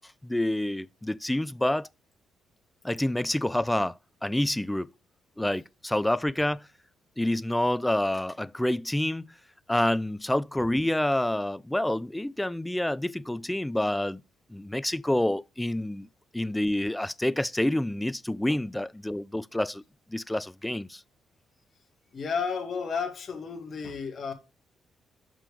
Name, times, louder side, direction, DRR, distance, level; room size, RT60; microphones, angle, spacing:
voice 1, 0.2-1.9 2.8-4.9 5.4-6.7 7.2-9.2 9.7-14.2 14.5-16.1 16.3-19.8 20.1-21.0, left 1 dB, 5° left, 0.3 m, -28 dB
voice 2, 22.1-24.3, left 5 dB, 45° left, 2.1 m, -32 dB
6.7 x 6.2 x 5.3 m
cardioid pair, 90°, 0 cm